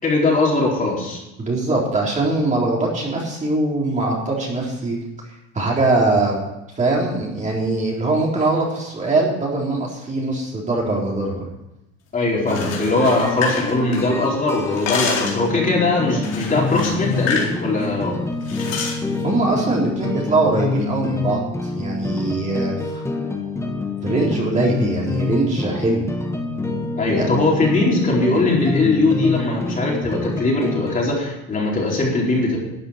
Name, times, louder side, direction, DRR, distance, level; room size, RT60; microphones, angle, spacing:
voice 1, 0.0-1.2 12.1-18.2 27.0-32.6, left 2 dB, 25° left, -3 dB, 4.5 m, -20 dB
voice 2, 1.4-5.0 5.5-6.4 6.8-11.4 19.2-21.4 21.7-23.0 24.0-26.1 27.2-27.3, right 2 dB, 20° right, -3 dB, 3.8 m, -21 dB
sound 1, 12.3-31.0, left 3 dB, 10° left, 1.5 m, -27 dB
sound 2, 12.4-14.3 14.6-15.5 16.2-17.6 17.8-18.0 18.5-19.0, left 5 dB, 50° left, 3.9 m, -27 dB
12.5 x 8.0 x 8.6 m, 0.93 s
cardioid pair, 125°, 33 cm